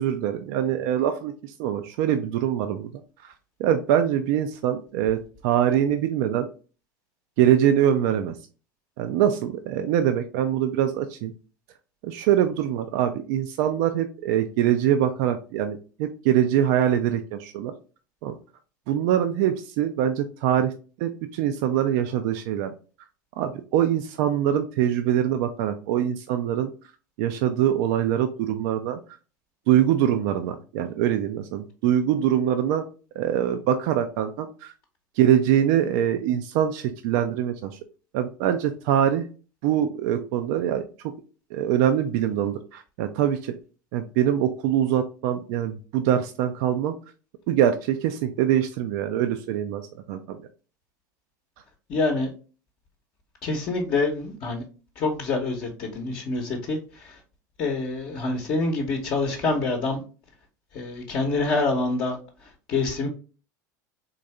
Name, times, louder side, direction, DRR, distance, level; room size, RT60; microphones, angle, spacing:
voice 1, 0.0-2.9 3.2-3.3 3.6-6.5 7.4-8.4 9.0-11.3 12.0-17.7 18.2-18.3 18.9-20.7 21.0-22.7 23.4-26.7 27.2-29.0 29.7-32.9 33.2-34.7 35.2-37.8 38.1-39.3 39.6-40.8 41.5-43.5 43.9-46.9 47.5-49.8 50.1-50.4, right 10 dB, 60° right, 7 dB, 0.5 m, -23 dB
voice 2, 51.9-52.3 53.4-54.6 55.0-57.2 57.6-60.0 60.7-62.2 62.7-63.1, left 3 dB, 50° left, 0 dB, 0.9 m, -26 dB
3.9 x 2.7 x 3.2 m, 0.36 s
hypercardioid pair, 80°, 10 cm